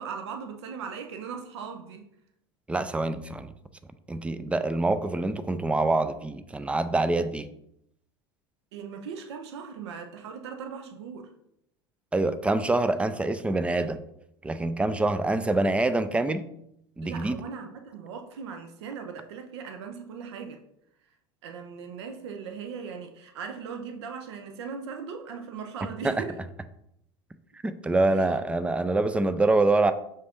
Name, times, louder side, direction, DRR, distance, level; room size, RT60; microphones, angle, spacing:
voice 1, 0.0-2.0 8.7-11.3 17.0-20.6 21.4-26.4 28.1-28.2, right 6 dB, 85° right, 5 dB, 0.5 m, -39 dB
voice 2, 2.7-3.5 4.1-7.5 12.1-14.0 14.4-16.5 17.0-17.4 26.0-26.2 27.6-29.9, right 2 dB, 10° right, 12 dB, 0.3 m, -25 dB
5.4 x 2.5 x 3.5 m, 0.77 s
hypercardioid pair, 85°, 14 cm